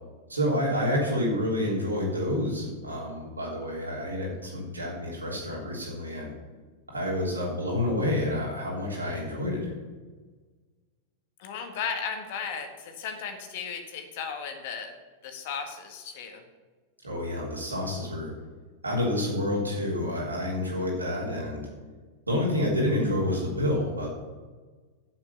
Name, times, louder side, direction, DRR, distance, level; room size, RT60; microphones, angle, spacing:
voice 1, 0.3-6.3 6.9-9.7 17.0-18.3 18.8-21.7 22.3-24.1, left 1 dB, 85° right, -3 dB, 3.4 m, -28 dB
voice 2, 11.4-14.9 15.2-16.4, left 6 dB, 55° left, 5 dB, 1.8 m, -35 dB
8.7 x 7.5 x 6.8 m, 1.4 s
figure-of-eight pair, 95°, 0 cm